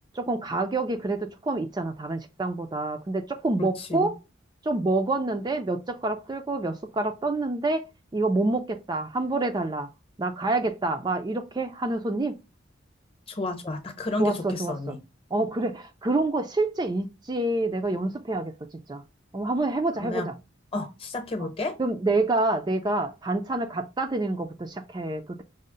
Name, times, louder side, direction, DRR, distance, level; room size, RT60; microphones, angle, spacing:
voice 1, 0.1-4.2 4.6-7.8 8.1-9.9 10.2-12.4 14.2-14.7 15.3-18.5 18.9-19.0 19.3-20.3 21.4-21.5 21.8-25.4, right 2 dB, 20° right, 0.4 m, -27 dB
voice 2, 3.6-4.1 13.3-15.0 20.0-20.3 20.7-21.8, left 2 dB, 30° left, 0.8 m, -31 dB
5.3 x 2.1 x 3.7 m
head